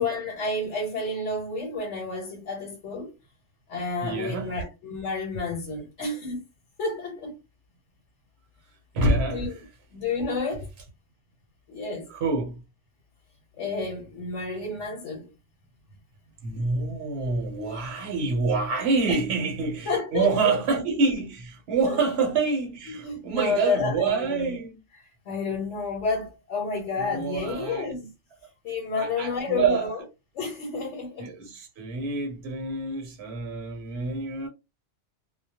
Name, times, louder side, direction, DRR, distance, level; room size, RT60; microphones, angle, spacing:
voice 1, 0.0-3.1 3.7-6.4 6.8-7.3 9.3-9.6 9.9-10.7 11.7-12.1 13.5-15.3 19.1-19.2 19.9-20.6 21.8-22.0 22.9-24.5 25.3-28.1 28.6-30.0 30.3-31.3, left 4 dB, 80° left, 1.1 m, -30 dB
voice 2, 4.0-4.6 8.9-9.4 12.1-12.6 16.4-24.8 27.0-27.9 28.9-29.9 31.2-34.5, right 4 dB, 65° right, 0.9 m, -27 dB
2.2 x 2.0 x 2.7 m
omnidirectional pair, 1.2 m